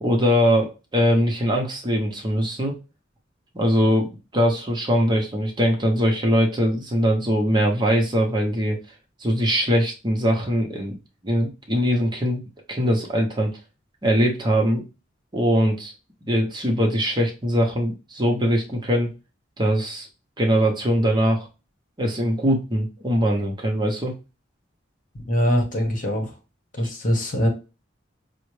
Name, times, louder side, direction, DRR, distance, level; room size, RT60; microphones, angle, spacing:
voice 1, 0.0-2.7 3.5-8.8 9.2-11.0 11.2-12.4 12.7-13.5 14.0-14.8 15.3-15.9 16.2-19.1 19.6-20.1 20.4-21.5 22.0-24.1, equal, 25° right, 0 dB, 0.7 m, -21 dB
voice 2, 25.3-26.3 26.7-27.5, equal, 45° left, 2 dB, 1.1 m, -22 dB
5.4 x 2.1 x 3.1 m, 0.30 s
head